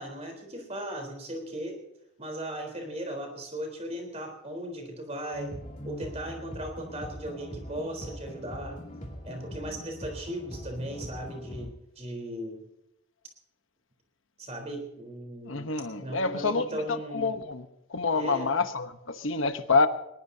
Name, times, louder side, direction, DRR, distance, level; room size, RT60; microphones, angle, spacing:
voice 1, 0.0-1.8 2.2-5.5 5.8-8.8 9.2-12.6 14.4-15.7 16.0-17.3 18.1-18.5, right 1 dB, 30° right, 3 dB, 3.9 m, -37 dB
sound 1, 5.3-11.7, equal, 35° left, 2.6 m, -41 dB
voice 2, 15.5-16.7 17.1-17.6 17.9-19.9, left 4 dB, 70° left, 9 dB, 1.0 m, -27 dB
20.5 x 19.5 x 2.8 m, 0.85 s
head